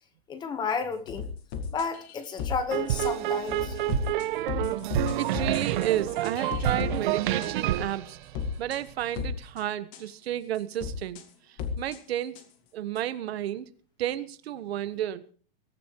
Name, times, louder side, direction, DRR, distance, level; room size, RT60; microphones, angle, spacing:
voice 1, 0.3-1.3 1.7-3.8, left 5 dB, 15° left, 1.2 m, -32 dB
sound 1, 1.1-2.6 3.0-3.1 3.5-7.0 7.4-7.5 8.3-8.8 9.2-9.6 9.9-10.0 10.7-11.2 11.6-12.0 12.3-12.4 13.0-13.1, left 6 dB, 35° left, 1.9 m, -34 dB
sound 2, 2.7-9.0, right 12 dB, 55° right, 1.2 m, -28 dB
voice 2, 5.2-8.2 8.6-11.2 11.8-12.4 12.7-13.7 14.0-15.2, right 12 dB, 85° right, 1.4 m, -32 dB
22.0 x 13.5 x 3.0 m
supercardioid pair, 170°, 30 cm